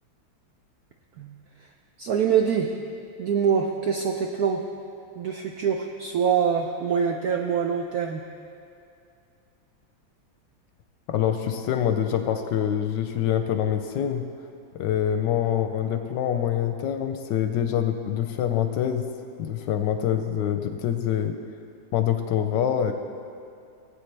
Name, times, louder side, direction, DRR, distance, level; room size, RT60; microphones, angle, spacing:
voice 1, 1.2-1.7 2.0-2.7 3.2-4.6 5.1-8.2, right 7 dB, 75° right, 3 dB, 0.8 m, -25 dB
voice 2, 11.1-14.2 14.8-19.0 19.4-21.3 21.9-22.9, left 9 dB, 75° left, 7 dB, 1.1 m, -25 dB
18.0 x 8.3 x 3.3 m, 2.5 s
omnidirectional pair, 2.2 m